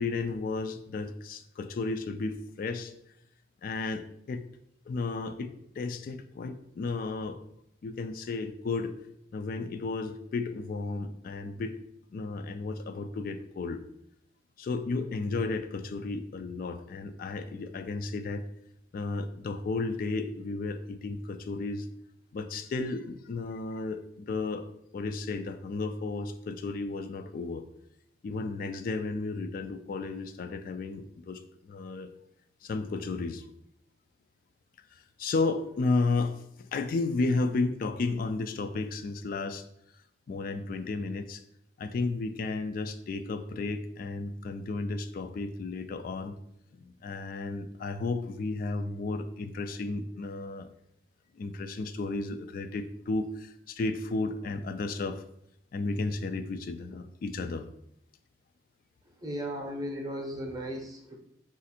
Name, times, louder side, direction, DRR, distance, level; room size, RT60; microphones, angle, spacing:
voice 1, 0.0-2.9 3.6-4.4 4.9-7.4 7.8-8.9 9.3-11.7 12.1-13.8 14.6-18.4 18.9-21.9 22.3-24.7 24.9-27.7 28.2-32.1 32.6-33.5 34.9-39.6 40.3-41.4 41.8-46.3 46.7-50.7 51.4-55.2 55.7-57.7, left 3 dB, 50° left, 9 dB, 0.3 m, -33 dB
voice 2, 59.2-61.2, equal, 20° right, 3 dB, 0.7 m, -36 dB
5.0 x 2.5 x 4.2 m, 0.76 s
head